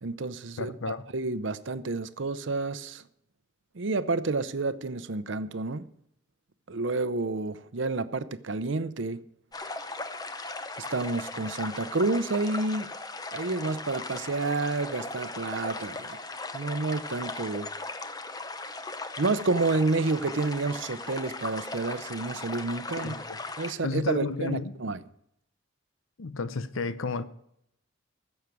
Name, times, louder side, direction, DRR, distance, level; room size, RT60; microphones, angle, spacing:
voice 1, 0.0-0.8 1.1-3.0 3.7-5.9 6.7-9.2 10.9-12.9 13.3-16.2 16.5-17.7 19.2-23.2 23.6-25.0, right 3 dB, 70° right, 0.7 m, -29 dB
voice 2, 0.6-1.0 23.0-23.4 23.8-24.7 26.2-27.3, left 4 dB, 90° left, 0.7 m, -32 dB
sound 1, 9.5-23.7, left 3 dB, 20° left, 0.8 m, -38 dB
14.5 x 7.3 x 6.1 m
head